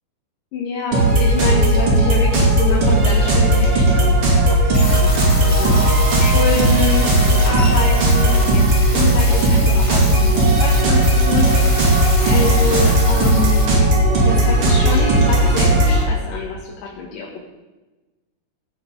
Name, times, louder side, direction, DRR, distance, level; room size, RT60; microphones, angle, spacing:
voice 1, 0.5-4.2 4.5-5.8 6.2-12.0 12.3-13.9 14.2-17.4, left 3 dB, 65° left, -3 dB, 3.0 m, -26 dB
sound 1, 0.9-16.0, right 1 dB, 40° right, 2.9 m, -15 dB
sound 2, 4.7-13.6, left 1 dB, 45° left, 0.4 m, -29 dB
sound 3, 5.6-9.4, right 5 dB, 60° right, 1.6 m, -33 dB
17.5 x 7.1 x 5.4 m, 1.2 s
omnidirectional pair, 4.3 m